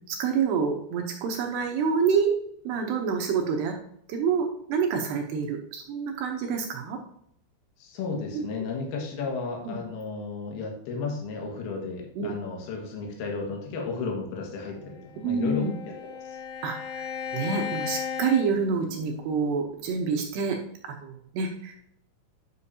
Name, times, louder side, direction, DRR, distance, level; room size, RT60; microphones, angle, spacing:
voice 1, 0.1-2.3 2.6-3.7 4.1-7.0 8.3-8.5 9.6-9.8 12.2-12.3 15.2-15.7 16.6-20.6 20.8-21.7, right 5 dB, 75° right, 2 dB, 2.5 m, -27 dB
voice 2, 7.8-15.7 16.0-16.4, left 4 dB, 60° left, 0 dB, 3.3 m, -33 dB
Bowed string instrument, 14.9-19.4, left 7 dB, 90° left, 1.7 m, -36 dB
10.5 x 6.9 x 2.8 m, 0.71 s
omnidirectional pair, 5.8 m